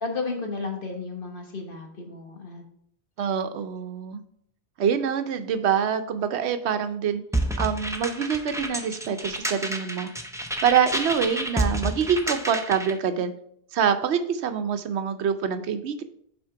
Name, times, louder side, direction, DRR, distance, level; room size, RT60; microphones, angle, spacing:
voice 1, 0.0-2.6, left 3 dB, 55° left, 2 dB, 1.3 m, -33 dB
voice 2, 3.2-4.2 4.8-7.2 7.6-10.1 10.6-13.3 13.7-16.0, right 7 dB, 80° right, 9 dB, 0.9 m, -25 dB
sound 1, 7.3-13.0, right 1 dB, 5° right, 0.4 m, -29 dB
6.1 x 4.4 x 4.6 m, 0.67 s
omnidirectional pair, 1.1 m